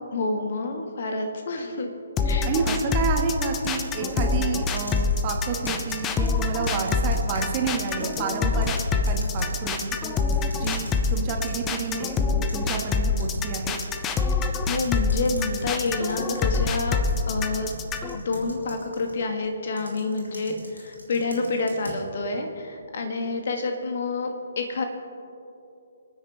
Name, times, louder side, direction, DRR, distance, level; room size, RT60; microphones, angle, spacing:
voice 1, 0.1-1.9 2.3-2.5 14.3-17.7 18.1-24.8, left 3 dB, 45° left, 4 dB, 1.7 m, -28 dB
sound 1, 2.2-18.2, left 4 dB, 15° left, 0.7 m, -25 dB
voice 2, 2.4-10.0 10.5-12.2 12.5-13.8, right 5 dB, 25° right, 2 dB, 1.7 m, -29 dB
sound 2, 3.1-12.2 12.5-19.2 19.8-22.0, right 1 dB, 80° left, 3.1 m, -44 dB
28.5 x 9.7 x 3.5 m, 2.8 s
figure-of-eight pair, 135°, 0 cm